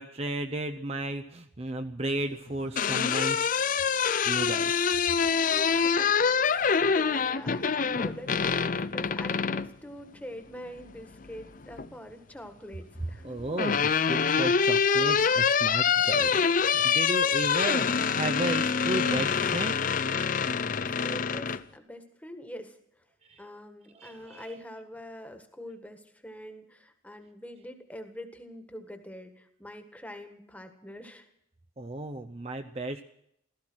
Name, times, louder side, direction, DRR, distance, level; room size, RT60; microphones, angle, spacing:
voice 1, 0.0-3.7 4.2-4.8 13.2-19.7 23.3-23.4 23.9-24.6 31.8-33.0, right 2 dB, 30° right, 6 dB, 0.6 m, -34 dB
sound 1, 2.5-9.7 11.2-11.9 13.1-21.6, left 6 dB, 40° left, 0.5 m, -25 dB
voice 2, 5.5-6.1 6.4-13.4 20.8-23.0 23.4-31.3, equal, 5° left, 6 dB, 1.6 m, -44 dB
16.0 x 14.5 x 6.2 m, 0.75 s
head